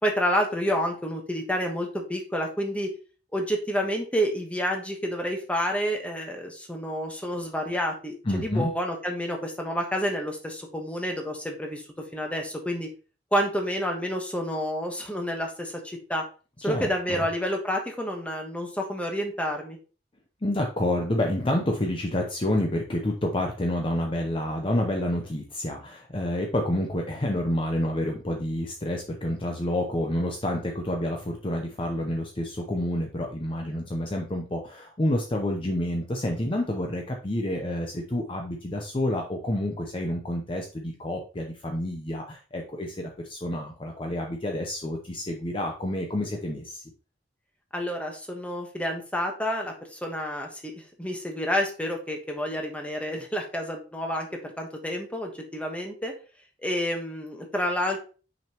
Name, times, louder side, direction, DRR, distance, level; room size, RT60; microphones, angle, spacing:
voice 1, 0.0-2.9 3.3-11.8 12.1-12.9 13.3-16.2 16.6-19.8 47.7-56.1 56.6-58.0, equal, 10° left, 2 dB, 1.2 m, -29 dB
voice 2, 8.3-8.7 16.6-17.2 20.4-46.8, left 1 dB, 30° left, 2 dB, 0.7 m, -29 dB
6.1 x 5.2 x 3.0 m, 0.36 s
head